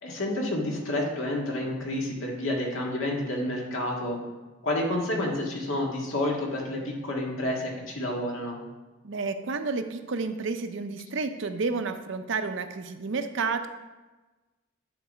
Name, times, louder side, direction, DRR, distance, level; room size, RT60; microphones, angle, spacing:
voice 1, 0.0-4.2 4.6-8.6, left 1 dB, 85° left, -1 dB, 1.7 m, -29 dB
voice 2, 9.0-13.7, right 4 dB, 65° right, 8 dB, 0.6 m, -30 dB
10.0 x 4.0 x 5.1 m, 1.2 s
head